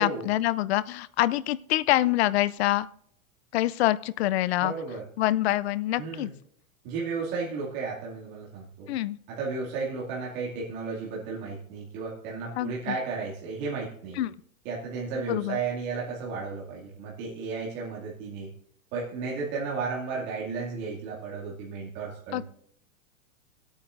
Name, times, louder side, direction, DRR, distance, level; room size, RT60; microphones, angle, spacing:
voice 1, 0.0-2.9 3.5-4.7 5.2-6.3 8.9-9.2 12.6-13.0 14.2-14.3 15.3-15.6 22.3-22.4, left 15 dB, 55° left, 17 dB, 0.4 m, -25 dB
voice 2, 4.6-5.0 6.0-6.3 6.8-8.9 9.3-14.2 14.6-18.5 18.9-22.4, right 4 dB, 40° right, -6 dB, 2.5 m, -33 dB
26.0 x 8.8 x 2.6 m, 0.67 s
supercardioid pair, 160°, 40 cm